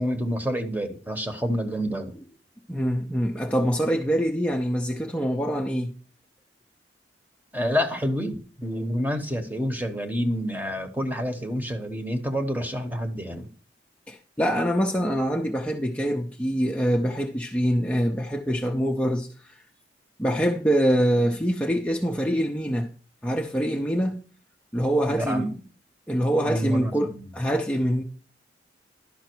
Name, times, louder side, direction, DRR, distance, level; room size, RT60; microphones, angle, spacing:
voice 1, 0.0-2.1 7.5-13.5 25.1-25.6 26.4-27.3, equal, 10° right, 1.0 m, -28 dB
voice 2, 2.7-5.9 14.1-19.6 20.2-22.9 23.2-24.2 24.7-25.5 26.1-28.0, equal, 5° left, 0.6 m, -25 dB
11.5 x 5.8 x 4.5 m
head